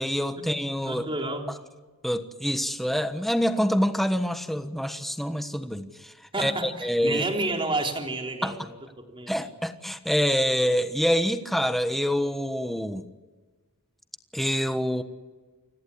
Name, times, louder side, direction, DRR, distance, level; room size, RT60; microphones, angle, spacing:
voice 1, 0.0-1.0 2.0-7.3 8.4-8.5 9.3-13.0 14.3-15.0, equal, ahead, 1.3 m, -26 dB
voice 2, 0.8-1.5 6.3-8.7 9.0-9.4, right 2 dB, 25° right, 3.7 m, -30 dB
29.5 x 17.5 x 9.8 m
head